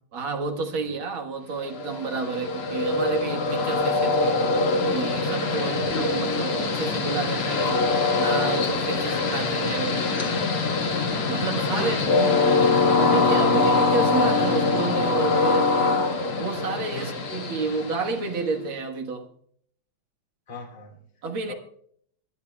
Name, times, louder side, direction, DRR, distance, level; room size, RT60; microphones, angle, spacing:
voice 1, 0.1-4.4 4.9-7.9 8.2-10.0 11.3-12.6 13.0-16.1 16.4-19.3 21.2-21.5, right 4 dB, 70° right, 2.4 m, -30 dB
Train, 1.7-18.5, left 3 dB, 85° left, 2.5 m, -23 dB
voice 2, 11.7-12.4 16.9-17.3 20.5-21.0 21.5-21.6, left 2 dB, 20° left, 2.6 m, -39 dB
26.5 x 10.0 x 2.3 m
omnidirectional pair, 2.3 m